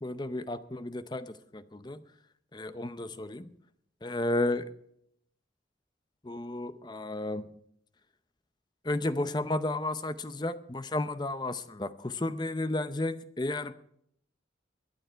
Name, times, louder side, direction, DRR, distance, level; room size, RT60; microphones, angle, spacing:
voice 1, 0.0-2.0 2.5-3.5 4.0-4.6 6.2-7.5 8.8-13.7, left 2 dB, 25° left, 12 dB, 0.6 m, -33 dB
22.5 x 9.1 x 4.5 m, 0.70 s
head